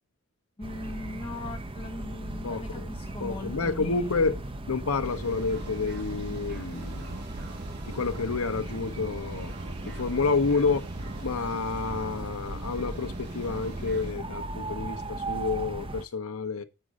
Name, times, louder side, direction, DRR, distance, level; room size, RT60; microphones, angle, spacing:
voice 1, 0.6-4.4, left 2 dB, 25° left, 0.8 m, -40 dB
sound 1, 0.6-16.0, right 2 dB, 25° right, 0.7 m, -37 dB
voice 2, 2.4-2.9 3.2-4.4 4.7-7.1 7.9-9.5 9.8-10.9 11.2-16.6, left 4 dB, 80° left, 0.8 m, -29 dB
sound 2, 5.0-14.1, right 2 dB, 50° right, 1.5 m, -43 dB
7.7 x 5.2 x 6.2 m
head